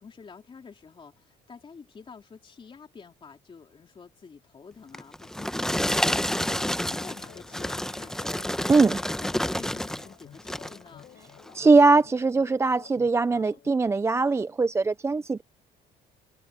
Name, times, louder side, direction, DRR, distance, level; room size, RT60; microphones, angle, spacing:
voice 1, 0.0-11.1, left 5 dB, 30° left, 3.5 m, -48 dB
sound 1, 4.9-10.1 10.4-10.8 11.4-11.5, left 1 dB, 5° left, 0.9 m, -29 dB
sound 2, 6.5-13.7, left 11 dB, 60° left, 5.9 m, -52 dB
voice 2, 11.5-15.4, right 3 dB, 15° right, 0.4 m, -21 dB
cardioid pair, 110°, 17 cm